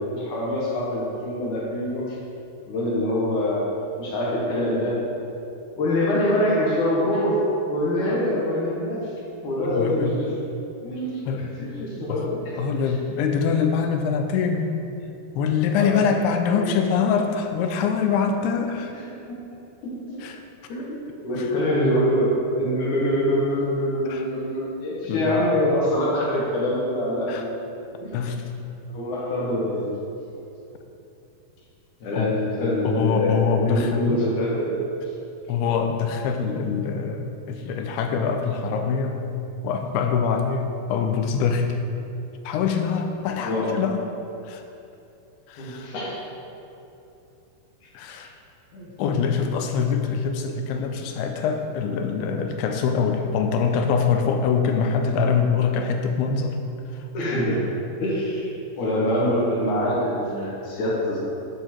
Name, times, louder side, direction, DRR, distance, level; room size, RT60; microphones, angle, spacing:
voice 1, 0.0-2.2 2.7-5.1 5.8-9.1 9.4-10.3 10.8-11.3 11.6-12.5 13.1-13.3 15.8-16.8 18.9-20.3 20.7-27.5 28.0-28.1 28.9-29.9 32.0-34.8 43.4-43.8 45.6-46.2 48.7-48.9 57.1-57.7 58.0-58.5 58.8-61.2, equal, 60° left, -5 dB, 2.3 m, -25 dB
voice 2, 9.6-10.2 11.3-11.5 12.1-12.3 12.6-14.8 15.4-18.9 20.2-20.4 21.8-22.0 24.1-24.2 25.1-25.4 27.3-27.5 28.1-28.5 32.1-32.3 32.8-34.3 35.5-39.2 39.6-41.8 42.5-44.0 44.4-44.6 45.5-45.9 47.9-48.3 49.0-56.6 56.9-57.1, left 6 dB, 80° left, 4 dB, 2.5 m, -24 dB
9.2 x 5.5 x 4.5 m, 2.8 s
omnidirectional pair, 4.8 m